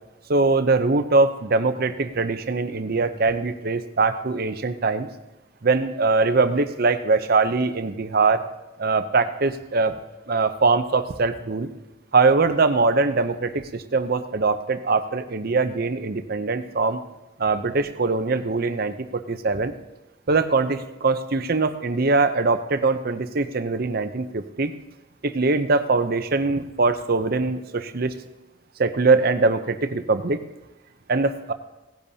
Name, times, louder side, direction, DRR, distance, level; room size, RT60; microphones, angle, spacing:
voice 1, 0.3-5.1 5.6-8.4 8.8-9.9 10.3-11.7 12.1-17.0 17.4-19.7 20.3-24.7 25.2-28.2 28.8-30.4 31.1-31.5, right 3 dB, 50° right, 10 dB, 0.7 m, -22 dB
17.5 x 10.5 x 2.8 m, 1.0 s
head